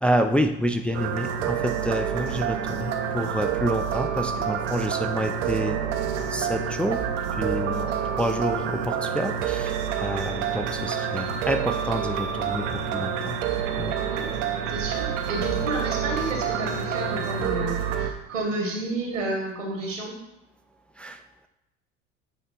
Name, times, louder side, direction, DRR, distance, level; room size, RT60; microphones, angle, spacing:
voice 1, 0.0-5.8 6.3-7.0 7.4-7.9 8.2-13.4 13.8-13.9 21.0-21.2, equal, 5° left, 5 dB, 0.4 m, -28 dB
sound 1, 0.9-18.1, right 8 dB, 75° right, 0.8 m, -28 dB
voice 2, 7.9-8.2 14.0-14.3 14.7-20.1, right 2 dB, 90° right, 1 dB, 1.8 m, -31 dB
9.2 x 3.3 x 4.4 m, 0.91 s
hypercardioid pair, 70°, 37 cm